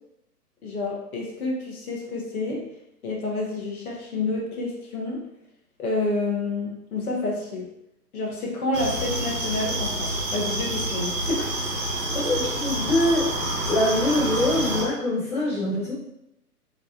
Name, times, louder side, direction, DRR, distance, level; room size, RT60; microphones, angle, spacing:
voice 1, 0.6-2.7 3.0-5.2 5.8-7.7 8.1-11.2, left 2 dB, 65° left, -2 dB, 0.9 m, -29 dB
sound 1, 8.7-14.8, right 1 dB, 60° right, 1.0 m, -28 dB
voice 2, 12.1-15.9, left 1 dB, 5° left, -13 dB, 0.8 m, -24 dB
3.1 x 2.2 x 2.7 m, 0.82 s
figure-of-eight pair, 130°, 47 cm